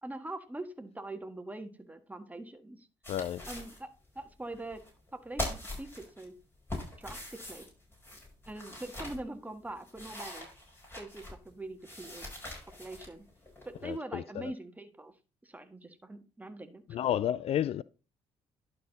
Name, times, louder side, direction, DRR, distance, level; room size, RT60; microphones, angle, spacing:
voice 1, 0.0-2.9 3.5-3.9 4.1-4.8 5.1-6.3 7.0-7.6 8.5-10.5 11.0-12.3 12.8-13.3 13.6-15.1 15.4-17.0, right 2 dB, 15° right, 1.5 m, -43 dB
sound 1, 3.0-3.8 4.2-4.3 4.5-5.1 5.4-6.2 6.7-9.2 9.7-11.5 11.8-14.0, left 1 dB, 20° left, 4.9 m, -42 dB
voice 2, 3.1-3.4 13.8-14.5 16.9-17.8, left 10 dB, 55° left, 0.4 m, -31 dB
11.5 x 4.4 x 4.0 m
supercardioid pair, 70°, 12 cm